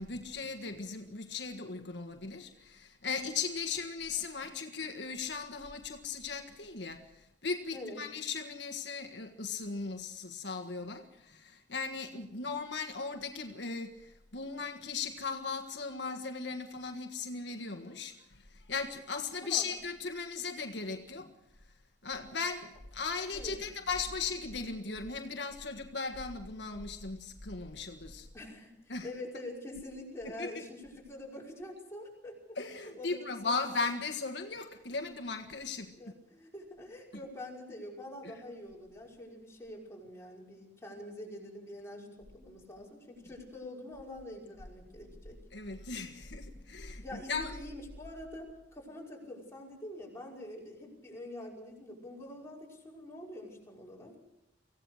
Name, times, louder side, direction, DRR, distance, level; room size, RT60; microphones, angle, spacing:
voice 1, 0.0-21.3 22.0-28.3 28.9-29.1 30.4-30.5 32.5-35.9 38.2-38.3 45.5-47.5, left 4 dB, 75° left, 1.7 m, -37 dB
voice 2, 23.3-23.7 28.3-32.3 32.8-33.2 33.4-33.9 36.0-45.4 47.0-54.1, left 1 dB, 15° left, 5.7 m, -45 dB
25.0 x 16.5 x 6.5 m
head